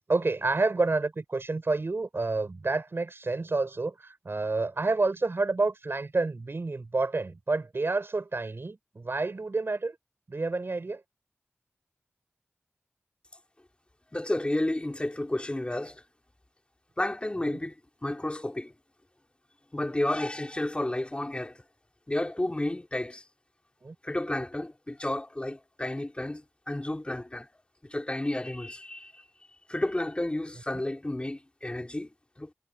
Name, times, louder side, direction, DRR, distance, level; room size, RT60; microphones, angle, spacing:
voice 1, 0.1-10.0 10.3-11.0 17.5-17.6 23.8-24.0, right 3 dB, 60° right, 5.8 m, -29 dB
voice 2, 14.1-16.0 17.0-18.7 19.7-21.6 22.1-23.2 24.0-27.5 27.8-29.2 29.7-32.1 32.4-32.5, left 1 dB, 25° left, 3.3 m, -31 dB
wide cardioid pair, 75°, 5 cm